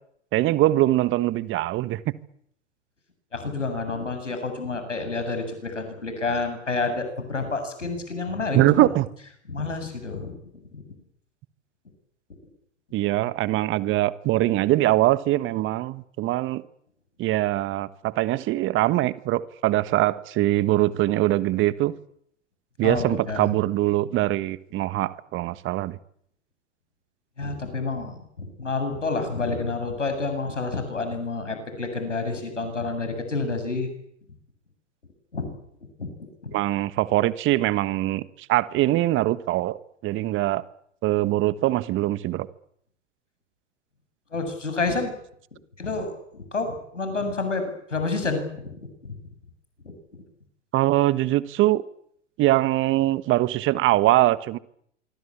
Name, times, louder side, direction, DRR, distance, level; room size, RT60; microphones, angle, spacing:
voice 1, 0.3-2.0 8.5-9.1 12.9-16.6 17.2-21.9 22.8-26.0 36.5-38.2 38.5-39.8 40.0-40.6 41.0-42.5 50.7-51.8 52.4-54.6, right 16 dB, 35° right, 16 dB, 1.4 m, -22 dB
voice 2, 3.3-8.9 9.5-10.4 10.7-10.8 22.8-23.5 27.4-33.9 35.3-35.6 36.0-36.1 36.4-36.6 44.3-45.2 45.8-49.2 50.1-50.2, left 3 dB, 90° left, 8 dB, 7.7 m, -29 dB
25.5 x 24.0 x 8.7 m, 0.69 s
hypercardioid pair, 100°, 36 cm